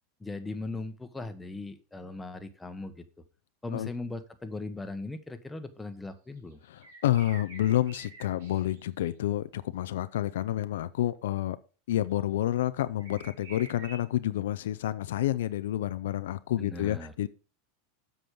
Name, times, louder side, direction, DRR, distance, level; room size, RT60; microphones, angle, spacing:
voice 1, 0.2-3.1 3.6-6.6 16.6-17.1, left 2 dB, 10° left, 1.2 m, -39 dB
sound 1, 6.4-9.1 12.1-12.2 13.0-14.0, right 3 dB, 85° right, 3.8 m, -48 dB
voice 2, 6.7-11.6 11.9-17.3, left 13 dB, 80° left, 0.5 m, -29 dB
7.9 x 6.2 x 5.1 m
hypercardioid pair, 115°, 0 cm